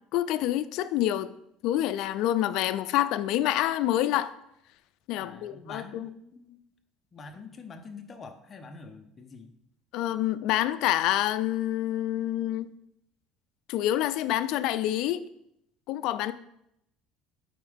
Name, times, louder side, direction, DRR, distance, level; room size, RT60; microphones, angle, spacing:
voice 1, 0.1-1.3 1.6-4.3 5.1-6.1 9.9-12.7 13.7-15.2 15.9-16.3, left 13 dB, 65° left, 0.4 m, -27 dB
voice 2, 5.2-6.6 7.1-9.5, left 4 dB, 25° left, 0.7 m, -45 dB
8.4 x 4.2 x 3.6 m
cardioid pair, 145°, 0 cm